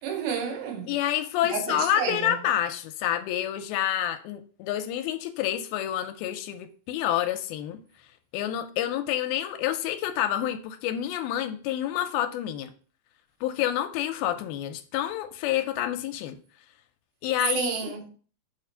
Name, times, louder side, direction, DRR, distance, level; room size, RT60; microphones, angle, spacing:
voice 1, 0.0-0.9 1.4-2.4 17.5-18.1, right 6 dB, 85° right, 2.8 m, -31 dB
voice 2, 0.9-7.8 8.3-12.7 13.4-16.4 17.2-17.7, left 11 dB, 85° left, 2.4 m, -28 dB
6.9 x 2.5 x 5.4 m
omnidirectional pair, 4.2 m